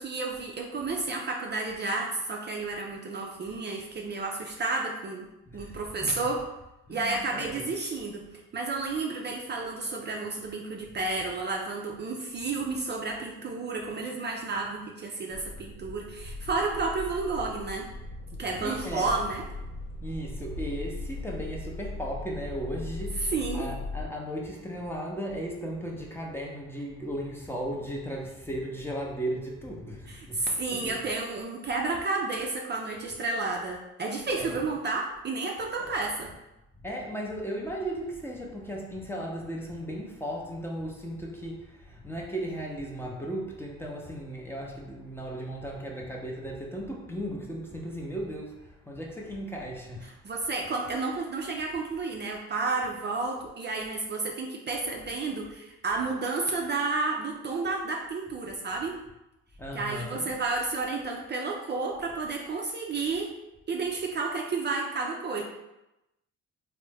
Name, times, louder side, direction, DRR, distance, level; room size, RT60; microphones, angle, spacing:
voice 1, 0.0-5.3 5.5-6.4 6.9-8.2 8.5-17.9 18.4-19.4 23.3-23.7 30.1-36.3 50.0-59.0 59.7-63.3 63.7-65.4, right 3 dB, 35° right, 0 dB, 0.4 m, -31 dB
voice 2, 5.5-6.3 6.9-7.7 18.6-19.1 20.0-30.4 30.7-31.0 34.3-34.7 36.8-50.1 59.6-60.3, right 1 dB, 10° left, -2 dB, 0.6 m, -36 dB
sound 1, 15.3-24.1, left 2 dB, 80° left, 0.8 m, -39 dB
3.3 x 2.1 x 3.3 m, 0.93 s
cardioid pair, 90°, 30 cm